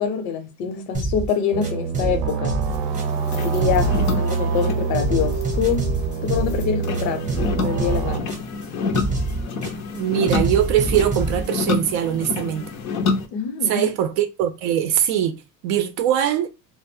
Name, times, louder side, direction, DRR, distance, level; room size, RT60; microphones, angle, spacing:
voice 1, 0.0-2.7 3.3-5.9 6.2-7.3 7.6-8.3 13.3-13.9, left 7 dB, 75° left, 0.8 m, -25 dB
sound 1, 0.9-1.3 1.6-3.3 3.6-4.6 4.9-6.6 6.9-8.6 8.9-10.0 10.3-11.5, right 2 dB, 15° right, 0.8 m, -26 dB
sound 2, 1.5-8.2, right 6 dB, 85° right, 0.7 m, -26 dB
sound 3, 2.7-13.3, left 4 dB, 40° left, 0.5 m, -29 dB
voice 2, 9.9-12.7 13.6-16.5, right 10 dB, 50° right, 0.5 m, -22 dB
2.2 x 2.0 x 3.3 m
supercardioid pair, 140°, 49 cm